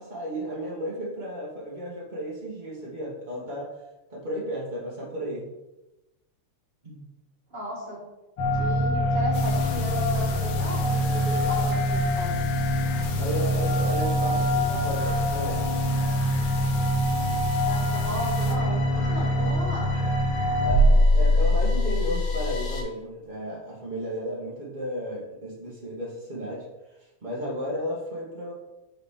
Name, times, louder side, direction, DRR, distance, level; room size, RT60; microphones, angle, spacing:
voice 1, 0.0-3.7 4.1-5.5 6.8-7.0 13.1-15.8 19.4-19.6 20.6-26.6 27.2-28.5, equal, 85° right, -5 dB, 0.4 m, -33 dB
voice 2, 7.5-8.0 8.5-12.4 17.6-19.9, left 1 dB, 35° right, -3 dB, 0.8 m, -34 dB
sound 1, 8.4-22.8, equal, 50° left, 1.6 m, -24 dB
sound 2, 9.3-18.6, left 5 dB, 75° left, 1.7 m, -39 dB
7.8 x 4.2 x 3.7 m, 0.99 s
omnidirectional pair, 3.5 m